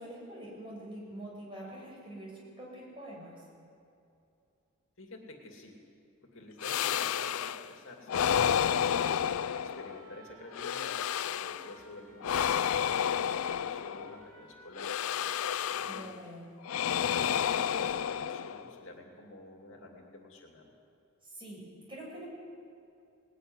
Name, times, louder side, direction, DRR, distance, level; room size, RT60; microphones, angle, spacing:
voice 1, 0.0-3.4 15.9-16.5 21.2-21.6 21.9-22.3, right 1 dB, 25° right, -3 dB, 6.5 m, -45 dB
voice 2, 5.0-5.8 6.2-8.8 9.5-15.0 15.7-16.1 16.9-20.7, left 2 dB, 65° left, 1 dB, 2.6 m, -49 dB
sound 1, 6.6-7.7 8.1-10.1 10.5-11.7 12.2-14.2 14.8-16.2 16.6-18.8, left 9 dB, 85° left, 0.4 m, -31 dB
sound 2, 8.3-14.7, right 3 dB, 70° right, 2.7 m, -56 dB
19.0 x 15.0 x 9.7 m, 2.6 s
head